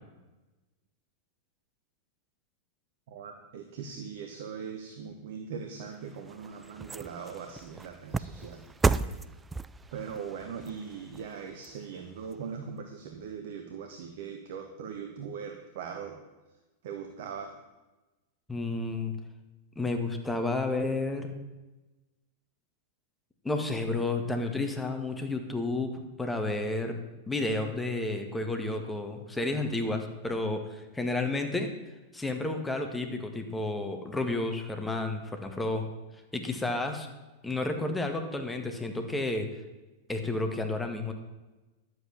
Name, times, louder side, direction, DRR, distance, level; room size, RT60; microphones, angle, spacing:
voice 1, 3.1-8.7 9.0-9.1 9.9-16.2 16.8-17.5, right 6 dB, 60° right, 5 dB, 1.3 m, -40 dB
sound 1, 5.8-12.3 12.8-12.9, right 4 dB, 15° right, 0.4 m, -34 dB
voice 2, 18.5-19.1 19.7-21.4 23.4-27.0 27.3-31.7 32.1-35.9 36.3-37.1 37.4-39.5 40.1-41.1, left 2 dB, 10° left, 5 dB, 1.7 m, -31 dB
11.5 x 8.0 x 7.3 m, 1.1 s
figure-of-eight pair, 95°, 0 cm